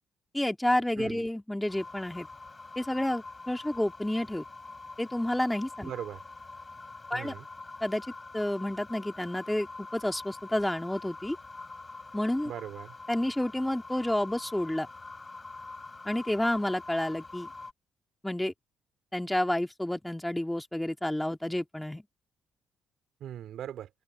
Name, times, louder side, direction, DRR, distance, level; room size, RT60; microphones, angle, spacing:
voice 1, 0.3-2.3 2.8-4.4 5.0-5.9 7.1-7.3 7.8-8.1 8.3-11.4 12.1-12.5 13.1-14.9 16.0-17.5 18.2-18.5 19.1-22.0, left 1 dB, 5° left, 2.8 m, -30 dB
sound 1, 1.7-17.7, left 3 dB, 25° left, 5.0 m, -45 dB
voice 2, 5.8-6.2 7.1-7.5 12.4-12.9 23.2-23.9, right 11 dB, 75° right, 3.0 m, -39 dB
open air
cardioid pair, 90°, 0 cm